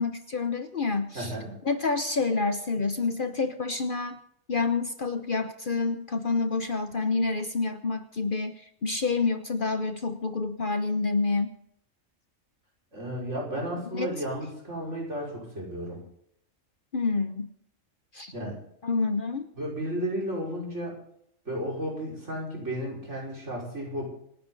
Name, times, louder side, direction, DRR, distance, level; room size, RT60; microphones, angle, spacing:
voice 1, 0.0-1.3 1.6-4.2 4.5-11.5 13.9-14.1 16.9-17.5 18.1-18.3 18.8-19.5, left 4 dB, 45° left, 9 dB, 1.0 m, -28 dB
voice 2, 1.1-1.5 6.9-7.1 12.9-16.0 18.3-18.6 19.5-21.0 21.5-24.0, equal, 60° right, -3 dB, 5.9 m, -33 dB
26.5 x 10.5 x 4.0 m, 0.70 s
omnidirectional pair, 1.4 m